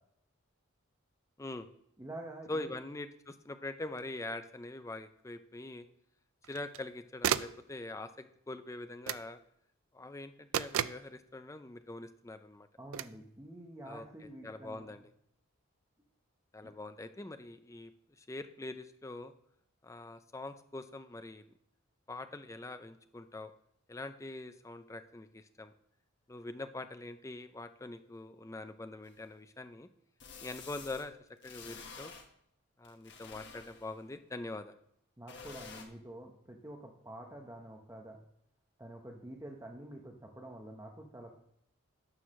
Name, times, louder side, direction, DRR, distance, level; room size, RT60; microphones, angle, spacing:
voice 1, 1.4-1.7 2.5-5.8 6.5-9.4 9.9-12.7 13.8-14.0 14.4-15.1 16.5-17.9 18.2-19.3 19.8-21.4 22.1-23.5 23.9-25.7 26.3-29.9 30.4-31.1 31.4-32.1 32.8-34.8, left 2 dB, 15° left, 10 dB, 0.4 m, -43 dB
voice 2, 2.0-2.7 12.8-15.0 35.2-38.2 38.8-41.4, right 1 dB, 15° right, 1 dB, 0.8 m, -48 dB
sound 1, 4.0-4.1 6.4-6.9 7.2-7.6 9.1-9.3 10.5-11.1 12.9-13.2, right 10 dB, 75° right, 0.3 m, -33 dB
sound 2, 29.0-29.1 30.2-31.0 31.4-32.2 32.8-34.0 35.3-35.8, left 5 dB, 55° left, 1.3 m, -49 dB
9.7 x 4.7 x 6.3 m, 0.74 s
head